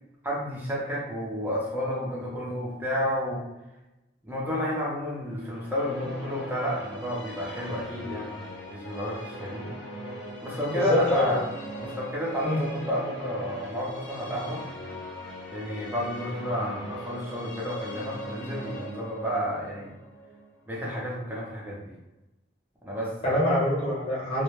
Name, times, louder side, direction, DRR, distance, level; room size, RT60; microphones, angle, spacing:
voice 1, 0.2-3.4 4.2-8.4 8.7-9.7 10.4-11.4 11.7-14.6 15.5-19.9 20.7-21.9 22.8-23.4, equal, 10° right, -5 dB, 0.5 m, -31 dB
sound 1, 5.4-21.4, equal, 85° left, 0.7 m, -40 dB
voice 2, 10.7-11.4 12.4-12.6 23.2-24.4, left 1 dB, 35° left, -6 dB, 0.7 m, -25 dB
2.1 x 2.0 x 3.0 m, 0.99 s
head